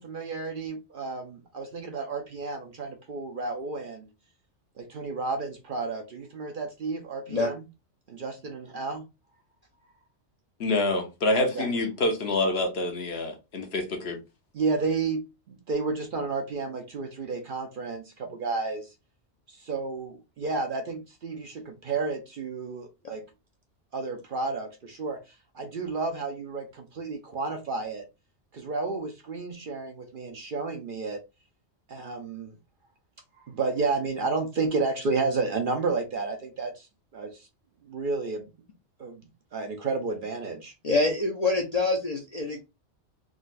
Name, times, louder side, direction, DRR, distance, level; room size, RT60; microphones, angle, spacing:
voice 1, 0.0-4.1 4.8-7.6 8.1-9.0 11.3-11.7 14.5-18.9 19.5-23.2 23.9-28.0 28.5-31.2 31.9-32.5 33.4-36.9 37.1-37.5 37.8-38.5 39.0-39.2 39.5-40.7, right 4 dB, 55° right, 0.6 m, -31 dB
voice 2, 10.6-14.2, left 2 dB, 60° left, 1.0 m, -27 dB
voice 3, 40.8-42.6, left 2 dB, 45° left, 0.5 m, -25 dB
3.7 x 2.2 x 2.4 m
omnidirectional pair, 1.2 m